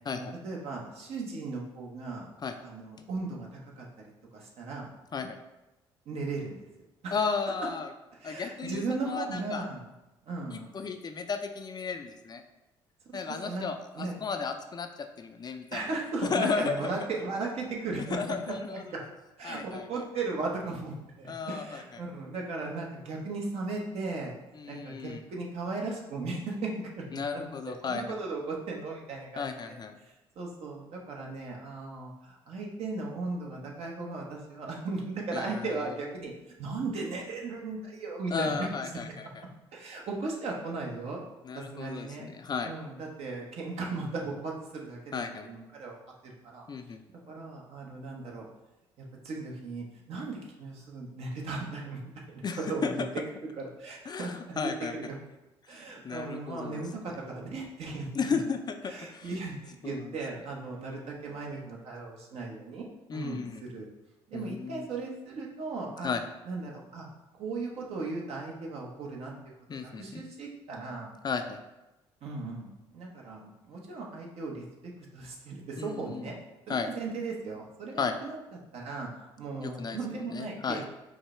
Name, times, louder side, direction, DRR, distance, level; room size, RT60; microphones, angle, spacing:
voice 1, 0.1-2.3 2.6-3.8 4.3-4.9 6.0-6.6 7.0-7.2 8.2-9.8 10.2-10.7 13.1-13.6 13.9-14.1 15.7-19.0 19.4-24.3 24.7-36.3 36.6-38.7 39.7-41.2 41.5-42.3 42.6-46.0 46.2-46.6 47.3-48.5 49.0-52.0 52.3-52.4 52.7-53.0 53.6-55.1 55.7-58.3 58.8-62.9 63.1-63.9 64.3-66.1 66.4-67.1 67.4-69.3 69.8-71.1 72.2-76.3 76.7-78.4 78.7-79.1 79.4-80.8, right 3 dB, 60° right, -1 dB, 1.1 m, -37 dB
voice 2, 7.1-7.9 8.2-9.6 10.5-12.4 13.1-15.8 16.3-16.9 18.1-18.8 19.4-20.0 21.3-21.8 24.6-25.2 27.1-28.2 29.4-30.0 35.3-35.7 38.3-39.4 41.4-42.7 45.1-45.5 46.7-47.0 52.4-52.9 54.1-54.9 55.7-55.8 56.0-57.1 58.1-59.3 59.8-60.1 63.1-63.6 64.3-64.9 66.0-66.2 69.7-70.2 71.2-71.6 75.8-76.3 76.7-76.9 78.0-78.1 79.6-80.0 80.3-80.8, left 5 dB, 35° left, 7 dB, 0.4 m, -34 dB
4.8 x 2.2 x 4.3 m, 0.99 s
hypercardioid pair, 60°, 12 cm